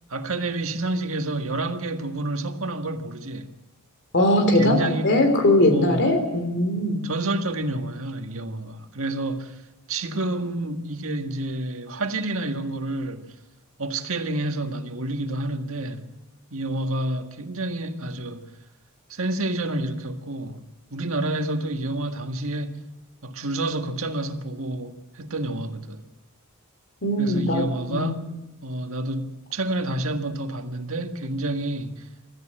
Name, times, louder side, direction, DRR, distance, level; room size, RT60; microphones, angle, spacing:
voice 1, 0.1-3.5 4.5-5.2 5.7-6.2 7.0-9.5 9.9-13.3 13.8-16.0 16.5-18.5 19.1-20.6 20.9-22.8 23.2-26.1 27.2-28.3 28.6-32.1, right 2 dB, 65° right, 1.8 m, -29 dB
voice 2, 4.1-7.1 27.0-27.6 27.9-28.1, left 1 dB, 55° left, 3.4 m, -20 dB
25.5 x 14.0 x 7.8 m
head